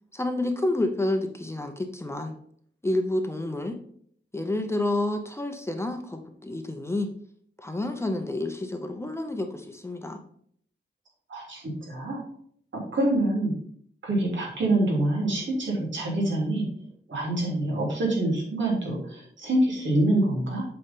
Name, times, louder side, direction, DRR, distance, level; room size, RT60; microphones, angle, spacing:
voice 1, 0.1-2.3 2.8-3.8 4.3-7.1 7.6-10.2, left 1 dB, 15° left, 5 dB, 0.8 m, -29 dB
voice 2, 11.3-12.2 12.9-13.5 14.0-16.7 17.1-20.7, right 1 dB, 75° right, -3 dB, 3.3 m, -26 dB
8.2 x 5.4 x 3.7 m, 0.62 s
wide cardioid pair, 170°, 19 cm